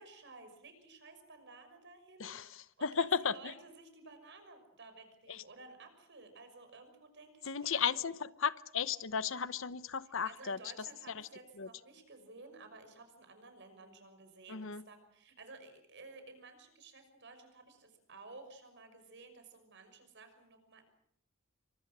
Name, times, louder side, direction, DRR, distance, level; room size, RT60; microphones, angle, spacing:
voice 1, 0.0-7.9 9.3-9.4 10.1-20.9, right 3 dB, 60° right, 7 dB, 6.0 m, -54 dB
voice 2, 2.2-3.3 5.3-5.4 7.5-10.6 11.6-11.7 14.5-14.8, left 6 dB, 65° left, 15 dB, 1.0 m, -35 dB
28.5 x 24.5 x 6.2 m, 0.69 s
head